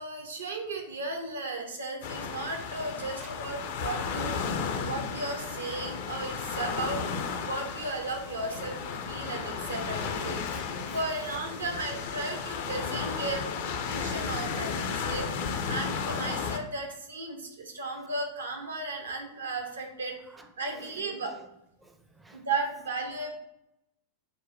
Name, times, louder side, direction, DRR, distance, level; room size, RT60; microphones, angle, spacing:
voice 1, 0.0-4.4 4.9-7.0 7.4-10.4 10.9-20.2 20.6-21.3 22.3-23.3, right 2 dB, 70° right, 3 dB, 0.7 m, -35 dB
sound 1, 2.0-16.6, left 6 dB, 50° left, 0.4 m, -34 dB
sound 2, 7.7-8.9 9.2-10.4 10.7-11.9 12.2-13.4, right 2 dB, 55° right, 1.0 m, -51 dB
voice 2, 10.4-11.3 20.3-21.5 21.8-22.4 23.2-23.3, right 1 dB, 10° right, 5 dB, 0.4 m, -52 dB
4.5 x 2.1 x 3.8 m, 0.83 s
figure-of-eight pair, 90°, 0 cm